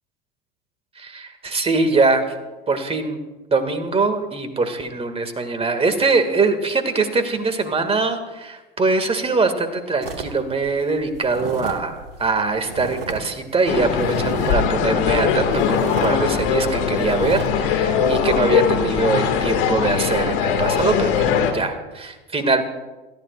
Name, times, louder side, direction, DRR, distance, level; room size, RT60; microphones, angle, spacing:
voice 1, 1.0-2.3 2.7-3.2 3.5-21.1 21.5-22.6, right 3 dB, 20° right, 8 dB, 2.2 m, -22 dB
sound 1, 10.0-13.2 13.5-14.7 15.1-15.2 15.6-16.2 16.5-16.7 17.0-17.5, right 4 dB, 80° right, 1.8 m, -32 dB
sound 2, 13.7-21.5, left 7 dB, 65° left, 2.2 m, -21 dB
28.5 x 14.5 x 2.5 m, 1.2 s
hypercardioid pair, 80°, 29 cm